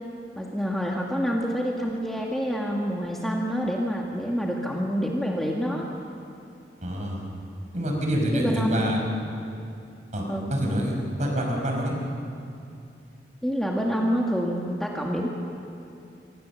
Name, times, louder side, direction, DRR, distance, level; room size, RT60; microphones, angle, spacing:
voice 1, 0.4-5.9 8.3-9.1 10.3-10.5 13.4-15.3, equal, ahead, -2 dB, 1.8 m, -27 dB
voice 2, 6.8-7.2 7.7-9.0 10.1-12.0, equal, 40° right, 0 dB, 5.2 m, -26 dB
27.0 x 24.5 x 7.1 m, 2.6 s
head